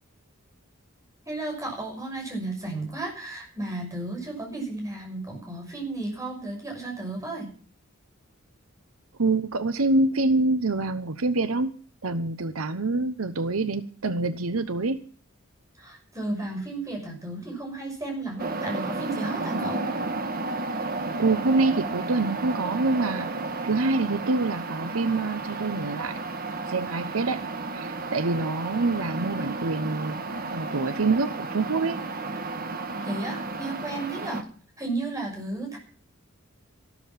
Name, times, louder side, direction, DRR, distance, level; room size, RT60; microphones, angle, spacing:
voice 1, 1.3-7.5 15.8-19.9 33.0-34.5 34.8-35.8, right 2 dB, 15° right, 1 dB, 6.4 m, -33 dB
voice 2, 9.2-11.7 12.0-15.0 21.2-23.3 23.6-26.2 26.6-27.4 27.7-30.2 30.5-32.0, right 3 dB, 80° right, 11 dB, 1.0 m, -26 dB
sound 1, 18.4-34.4, right 3 dB, 45° right, 1.4 m, -32 dB
13.0 x 13.0 x 5.9 m, 0.41 s
head